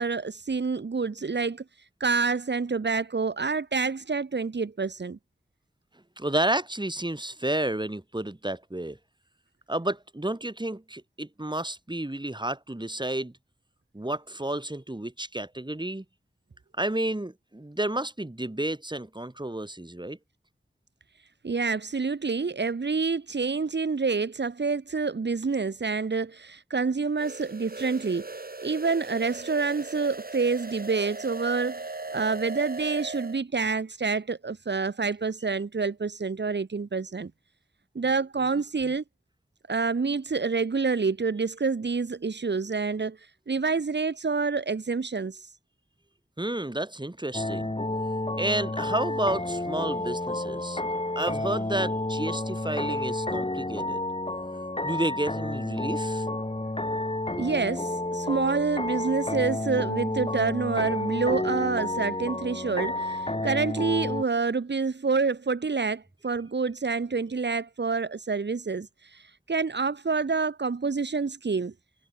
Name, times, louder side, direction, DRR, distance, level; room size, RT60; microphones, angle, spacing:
voice 1, 0.0-1.6 2.0-5.2 21.4-28.3 28.6-31.8 32.1-37.3 38.0-39.0 39.7-43.2 43.5-45.5 57.4-71.7, right 4 dB, 75° right, 2.0 m, -27 dB
voice 2, 6.2-9.0 9.7-13.3 13.9-16.0 16.8-20.2 46.4-47.7 48.4-50.8 51.2-54.0 54.8-56.3, right 1 dB, 25° right, 7.7 m, -31 dB
sound 1, 27.2-33.4, right 3 dB, 55° right, 7.3 m, -38 dB
sound 2, 47.3-64.2, left 2 dB, 30° left, 5.4 m, -30 dB
cardioid pair, 40°, 18 cm